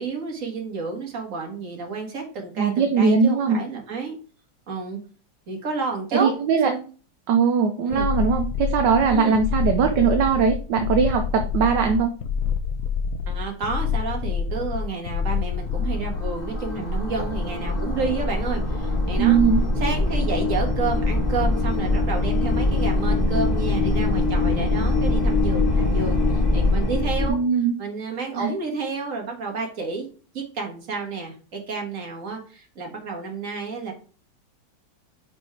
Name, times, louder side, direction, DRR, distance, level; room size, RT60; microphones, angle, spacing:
voice 1, 0.0-4.2 4.7-5.0 5.5-6.4 6.6-6.9 7.8-8.1 9.1-9.4 13.3-19.4 19.8-27.4 27.8-30.1 30.3-33.9, right 4 dB, 45° right, 1 dB, 2.0 m, -30 dB
voice 2, 2.6-3.6 6.2-6.7 7.3-12.1 19.2-19.6 27.3-27.7 28.3-28.5, right 6 dB, 70° right, 5 dB, 1.4 m, -20 dB
sound 1, 7.9-16.4, left 6 dB, 70° left, 0.8 m, -27 dB
sound 2, 15.4-27.3, left 2 dB, 25° left, 1.5 m, -23 dB
5.4 x 5.3 x 4.7 m, 0.38 s
omnidirectional pair, 2.1 m